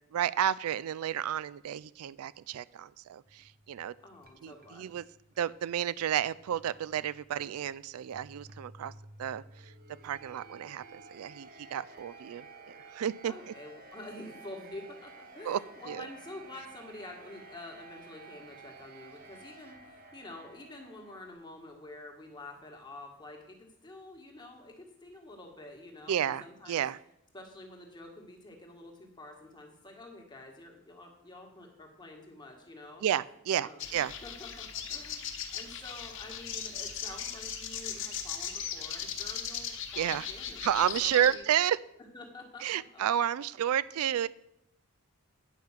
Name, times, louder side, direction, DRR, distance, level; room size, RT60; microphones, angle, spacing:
voice 1, 0.1-3.9 4.4-5.0 5.4-8.9 9.2-9.7 10.0-13.3 15.5-15.6 15.9-16.1 26.1-27.0 33.0-34.1 40.0-40.3 40.6-41.8 42.6-44.3, right 10 dB, 75° right, 19 dB, 0.3 m, -31 dB
sound 1, 3.2-21.3, right 3 dB, 40° right, 1.1 m, -53 dB
voice 2, 4.0-5.0 13.2-26.8 27.3-33.0 33.6-41.4 42.1-43.0, left 2 dB, 20° left, 2 dB, 1.6 m, -48 dB
sound 2, 33.8-41.4, left 8 dB, 55° left, 1.0 m, -38 dB
9.3 x 5.6 x 7.3 m, 0.80 s
head